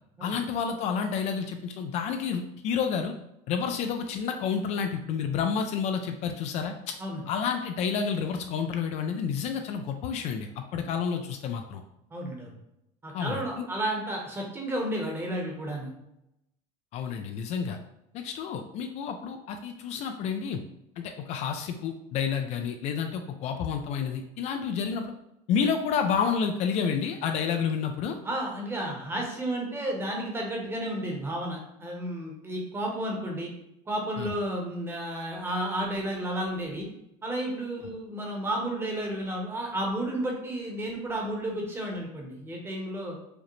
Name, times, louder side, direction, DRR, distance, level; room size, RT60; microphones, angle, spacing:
voice 1, 0.2-3.1 3.5-7.0 7.3-11.8 13.1-13.7 16.9-17.8 18.1-20.6 21.0-25.1 25.5-28.2 34.2-34.3, left 6 dB, 50° left, 6 dB, 0.4 m, -30 dB
voice 2, 12.1-12.5 13.0-15.9 28.2-33.5 33.9-36.9 37.2-43.2, right 1 dB, 15° right, 0 dB, 0.9 m, -32 dB
4.9 x 2.0 x 3.1 m, 0.83 s
cardioid pair, 130°, 15 cm